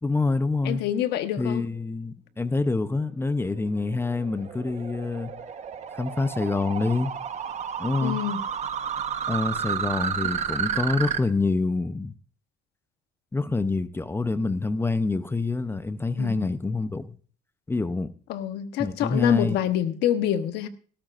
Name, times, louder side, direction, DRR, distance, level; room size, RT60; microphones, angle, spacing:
voice 1, 0.0-0.8 1.4-5.3 5.9-7.1 7.8-8.2 9.3-12.1 13.3-17.1 17.7-18.1 18.8-19.6, left 3 dB, 15° left, 0.6 m, -26 dB
voice 2, 0.6-1.6 8.0-8.4 16.2-16.5 18.3-20.7, left 11 dB, 85° left, 1.1 m, -26 dB
sound 1, 3.1-11.2, right 7 dB, 40° right, 1.1 m, -31 dB
17.5 x 13.5 x 2.5 m
cardioid pair, 110°, 17 cm